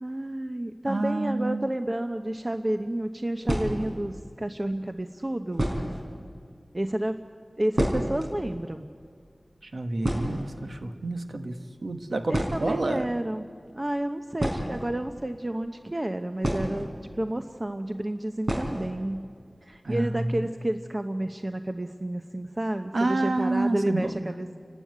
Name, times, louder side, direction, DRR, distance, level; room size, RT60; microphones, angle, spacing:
voice 1, 0.0-5.6 6.7-7.2 7.6-8.9 12.3-16.9 17.2-19.3 19.6-24.6, right 1 dB, 30° right, 7 dB, 0.8 m, -30 dB
voice 2, 0.8-1.7 9.6-13.1 19.8-20.5 22.9-24.1, right 2 dB, 75° right, 7 dB, 1.3 m, -29 dB
sound 1, 2.4-2.6 3.4-4.1 5.0-5.1 5.5-6.1 6.4-6.5 6.7-6.9 7.2-8.3 8.6-8.7 9.0-9.3 9.6-9.7 10.0-10.9 11.9-12.0 12.3-12.9 14.3-15.4 16.4-17.2 17.5-17.6 18.4-18.9 19.2-19.3 19.7-19.8 20.2-20.6, right 1 dB, 60° right, 4.6 m, -29 dB
29.5 x 12.5 x 9.4 m, 2.1 s
wide cardioid pair, 50°, 0 cm